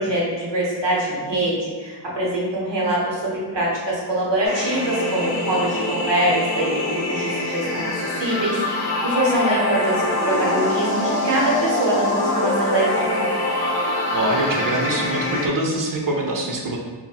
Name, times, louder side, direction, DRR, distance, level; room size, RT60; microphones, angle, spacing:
voice 1, 0.0-13.2, right 1 dB, 85° right, -5 dB, 0.9 m, -24 dB
sound 1, 4.4-15.5, left 1 dB, 60° left, 0.5 m, -24 dB
voice 2, 14.1-16.8, right 1 dB, 50° right, 0 dB, 0.6 m, -24 dB
4.0 x 2.1 x 2.3 m, 1.4 s
wide cardioid pair, 45°, 42 cm